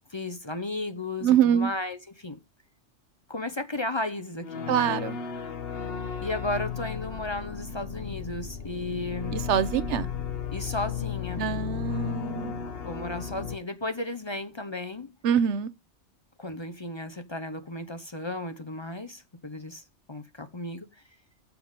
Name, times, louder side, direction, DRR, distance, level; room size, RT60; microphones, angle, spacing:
voice 1, 0.1-2.4 3.3-4.7 6.2-9.4 10.5-11.5 12.8-15.1 16.4-21.0, left 2 dB, 30° left, 0.7 m, -34 dB
voice 2, 1.2-1.7 4.7-5.2 9.3-10.1 11.4-12.6 15.2-15.7, right 9 dB, 85° right, 1.0 m, -24 dB
sound 1, 4.4-13.6, left 7 dB, 60° left, 1.1 m, -34 dB
7.1 x 5.9 x 5.0 m
omnidirectional pair, 1.2 m